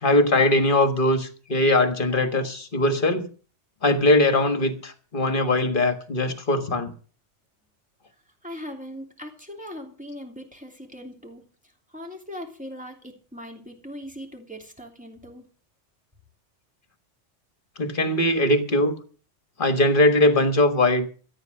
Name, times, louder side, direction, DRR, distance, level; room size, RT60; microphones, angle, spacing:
voice 1, 0.0-3.3 3.8-6.9 17.8-18.9 19.6-21.1, left 1 dB, 45° left, 1.7 m, -21 dB
voice 2, 8.4-11.4 11.9-15.5, equal, 5° right, 2.9 m, -40 dB
14.0 x 9.2 x 6.5 m
omnidirectional pair, 1.2 m